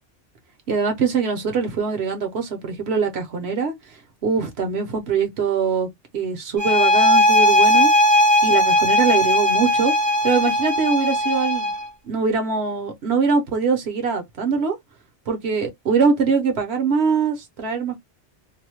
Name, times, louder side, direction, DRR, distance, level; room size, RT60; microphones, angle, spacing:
voice 1, 0.7-3.7 4.2-5.9 6.1-7.9 8.4-9.9 10.2-11.7 12.0-14.8 15.3-18.0, right 5 dB, 80° right, 1.1 m, -22 dB
sound 1, 6.6-11.9, left 1 dB, 30° right, 0.3 m, -18 dB
2.7 x 2.0 x 2.9 m
omnidirectional pair, 1.1 m